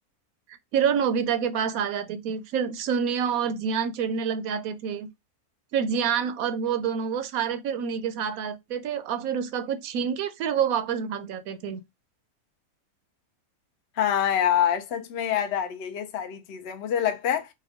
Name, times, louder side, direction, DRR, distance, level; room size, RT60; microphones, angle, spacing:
voice 1, 0.7-5.1 5.7-11.8, right 7 dB, 75° right, 1.0 m, -27 dB
voice 2, 14.0-17.5, left 9 dB, 60° left, 0.7 m, -26 dB
4.3 x 2.2 x 3.5 m
omnidirectional pair, 1.6 m